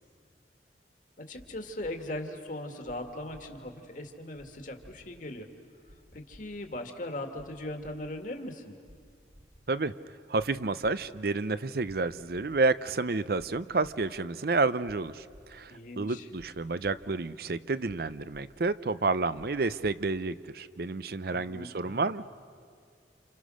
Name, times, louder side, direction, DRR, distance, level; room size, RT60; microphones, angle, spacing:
voice 1, 1.2-5.5 6.1-8.7 15.7-16.3 21.3-22.1, left 1 dB, 45° left, 4 dB, 2.2 m, -39 dB
sound 1, 1.3-1.5 1.8-1.9 2.8-3.0 3.3-3.4 4.3-4.5 4.8-4.9 5.8-6.0 6.3-6.4 7.3-7.5 7.8-7.9 8.8-9.0 9.3-9.4 10.3-10.5 10.8-10.9 11.8-12.0 12.3-12.4 13.3-13.5 13.8-13.9 14.8-15.0 15.3-15.4 16.3-16.5 16.8-16.9 17.8-18.0 18.3-18.4 19.3-19.5 19.8-19.9, equal, 85° right, 5.7 m, -54 dB
voice 2, 10.3-15.7 16.0-22.2, right 3 dB, 55° right, 14 dB, 0.7 m, -30 dB
29.5 x 29.0 x 6.4 m, 2.2 s
head